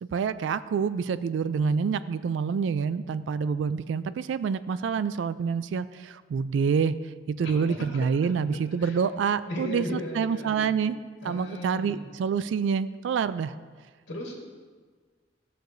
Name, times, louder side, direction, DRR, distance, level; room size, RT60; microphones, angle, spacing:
voice 1, 0.0-6.9 7.3-11.0 11.2-13.5, right 6 dB, 75° right, 14 dB, 0.3 m, -27 dB
voice 2, 7.4-8.3 8.8-9.0 9.4-10.8 11.2-12.0 14.1-14.5, left 1 dB, 70° left, -1 dB, 1.4 m, -37 dB
14.0 x 6.6 x 2.6 m, 1.5 s
head